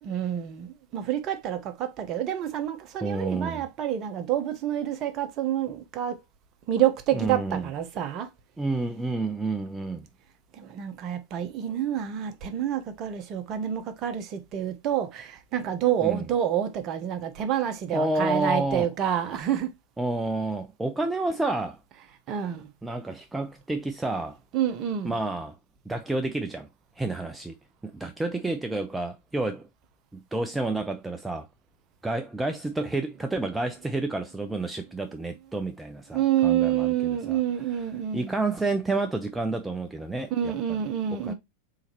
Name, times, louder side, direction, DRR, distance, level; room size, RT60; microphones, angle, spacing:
voice 1, 0.0-6.2 6.7-8.3 10.5-19.7 22.3-22.7 24.5-25.2 36.1-38.3 40.3-41.3, right 10 dB, 35° right, 0.9 m, -28 dB
voice 2, 3.0-3.6 7.1-7.7 8.6-10.1 16.0-16.2 17.9-18.9 20.0-21.8 22.8-24.4 25.0-25.6 25.9-26.7 27.0-27.5 27.9-29.7 30.1-31.5 32.0-36.9 37.3-37.4 38.1-40.5 41.2-41.3, right 2 dB, 5° right, 0.4 m, -29 dB
4.1 x 3.7 x 2.9 m
figure-of-eight pair, 90°, 0 cm